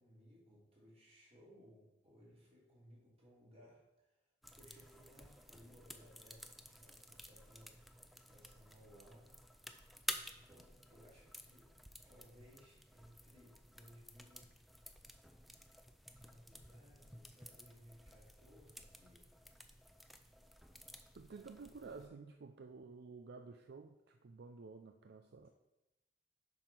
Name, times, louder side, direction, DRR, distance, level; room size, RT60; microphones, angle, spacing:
voice 1, 0.0-9.4 10.3-11.7 12.0-14.5 16.1-19.3, equal, 35° right, -4 dB, 2.9 m, -63 dB
sound 1, 4.4-22.1, equal, ahead, 0.5 m, -53 dB
voice 2, 21.1-25.5, right 4 dB, 60° right, 6 dB, 0.5 m, -52 dB
7.4 x 5.3 x 5.9 m, 1.0 s
head